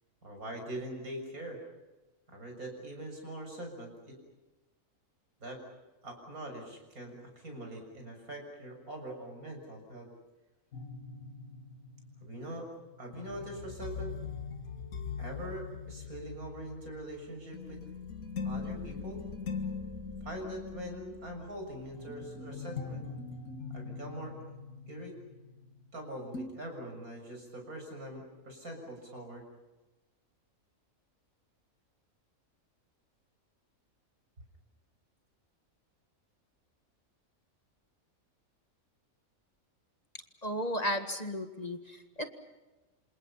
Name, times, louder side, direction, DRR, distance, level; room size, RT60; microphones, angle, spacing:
voice 1, 0.2-1.6 2.3-4.2 5.4-5.6 6.0-10.1 12.2-12.7 13.0-14.2 15.2-17.9 18.4-19.2 20.2-23.1 23.7-24.4 24.9-25.2 25.9-29.5, right 1 dB, 85° right, 3 dB, 7.2 m, -43 dB
sound 1, 10.7-26.0 26.3-26.5, left 5 dB, 75° left, 2.3 m, -41 dB
voice 2, 40.4-42.3, equal, 30° left, 6 dB, 1.8 m, -34 dB
28.0 x 27.5 x 5.7 m, 1.1 s
omnidirectional pair, 1.5 m